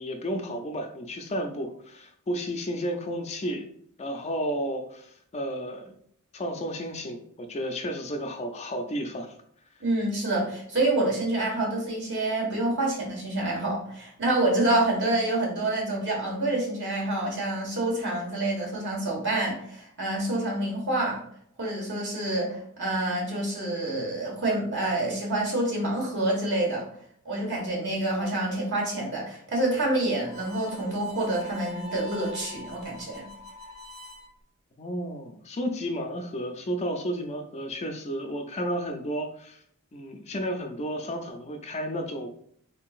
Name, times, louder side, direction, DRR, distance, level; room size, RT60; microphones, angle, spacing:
voice 1, 0.0-3.7 4.0-5.9 6.3-9.3 34.8-39.6 39.9-42.3, equal, 30° left, 5 dB, 0.4 m, -32 dB
voice 2, 9.8-21.2 21.6-26.9 27.2-33.3, right 2 dB, 55° right, -2 dB, 1.5 m, -27 dB
Harmonica, 30.2-34.3, left 2 dB, 30° right, 0.5 m, -43 dB
3.8 x 3.7 x 2.4 m, 0.66 s
head